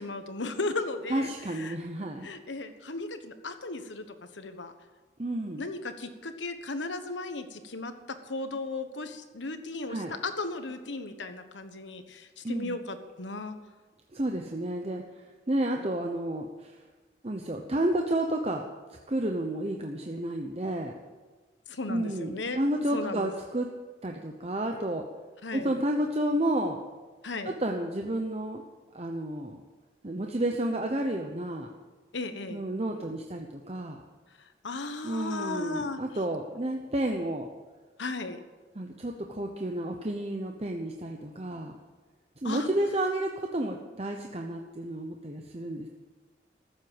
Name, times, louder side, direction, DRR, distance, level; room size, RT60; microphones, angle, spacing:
voice 1, 0.0-1.8 2.2-4.1 4.3-4.7 5.6-13.6 21.7-22.7 22.9-23.3 25.4-25.7 27.2-27.5 32.1-32.6 34.4-36.0 38.0-38.4 42.4-42.7, left 3 dB, 90° left, 8 dB, 1.3 m, -36 dB
voice 2, 1.1-2.3 5.2-5.6 9.9-10.1 12.4-12.7 14.1-16.8 17.2-18.6 19.1-20.9 21.9-23.7 24.0-25.0 25.5-26.8 27.5-28.6 28.9-29.6 30.0-31.7 32.5-34.0 35.0-37.5 38.8-41.7 42.4-45.9, right 1 dB, 35° right, 2 dB, 0.9 m, -31 dB
14.5 x 7.8 x 9.0 m, 1.3 s
head